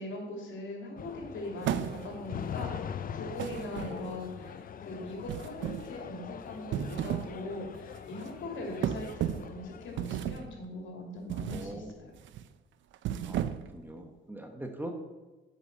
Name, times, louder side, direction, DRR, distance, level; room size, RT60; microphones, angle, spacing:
voice 1, 0.0-6.8 7.0-12.1, left 2 dB, 70° left, 1 dB, 2.8 m, -41 dB
sound 1, 1.0-10.1, left 8 dB, 45° left, 0.5 m, -42 dB
sound 2, 1.6-2.3 3.4-4.3 5.3-5.9 6.6-7.4 7.7-8.0 8.8-9.6 10.0-10.5 11.3-11.7 12.1-12.4 12.9-13.8, right 10 dB, 75° right, 0.6 m, -34 dB
voice 2, 11.5-12.1 13.2-13.4 13.7-14.9, right 1 dB, 10° right, 4 dB, 1.2 m, -43 dB
8.3 x 5.7 x 6.8 m, 1.2 s
cardioid pair, 90°, 20 cm